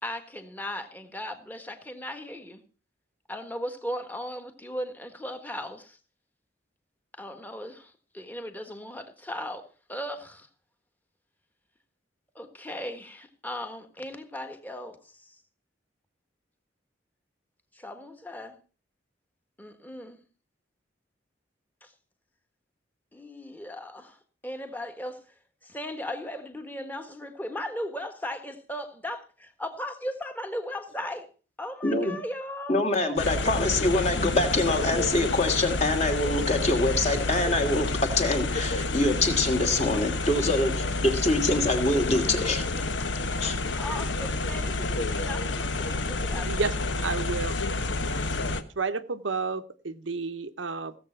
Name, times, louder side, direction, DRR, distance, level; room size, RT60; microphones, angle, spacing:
voice 1, 0.0-2.6 3.3-6.0 7.2-10.5 12.3-15.3 17.7-18.6 19.6-20.2 21.8-21.9 23.1-24.2 24.4-25.2 25.6-31.3 31.6-32.8 43.8-46.6, left 1 dB, 10° left, 7 dB, 1.5 m, -37 dB
voice 2, 32.7-42.9 43.4-43.6, left 2 dB, 35° left, 4 dB, 2.5 m, -25 dB
sound 1, 33.2-48.6, left 2 dB, 70° left, 1.1 m, -29 dB
voice 3, 47.0-47.6 48.1-51.0, right 4 dB, 80° right, 10 dB, 0.9 m, -31 dB
16.5 x 7.7 x 5.9 m, 0.37 s
head